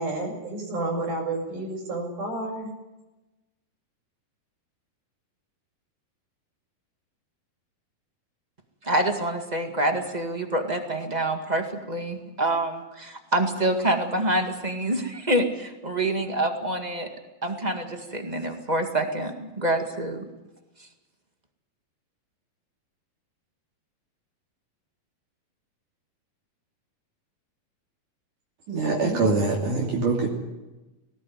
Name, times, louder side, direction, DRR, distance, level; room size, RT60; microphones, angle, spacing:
voice 1, 0.0-2.7 29.0-29.2, right 2 dB, 70° right, 6.8 m, -30 dB
voice 2, 8.8-17.1 17.4-20.2 20.8-20.9, right 1 dB, 30° right, 0.8 m, -26 dB
voice 3, 28.7-30.3, right 3 dB, 55° right, 4.2 m, -24 dB
19.0 x 19.0 x 9.6 m
omnidirectional pair, 4.4 m